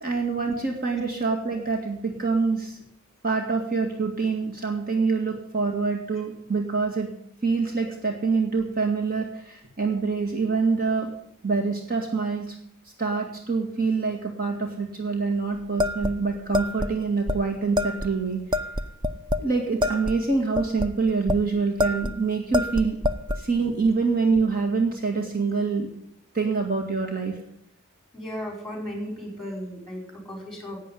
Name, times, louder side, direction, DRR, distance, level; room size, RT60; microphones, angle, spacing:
voice 1, 0.0-2.8 3.2-7.1 7.4-11.1 11.4-12.6 13.0-18.4 19.4-23.0 23.3-25.9 26.3-27.4, right 4 dB, 45° right, 1 dB, 2.0 m, -25 dB
sound 1, 15.8-16.9 17.3-17.4 17.8-18.1 18.5-19.5 19.8-21.4 21.8-22.2 22.5-23.4, left 2 dB, 20° right, 0.6 m, -26 dB
voice 2, 28.1-30.8, equal, ahead, 2 dB, 4.7 m, -35 dB
12.0 x 8.6 x 10.0 m, 0.69 s
head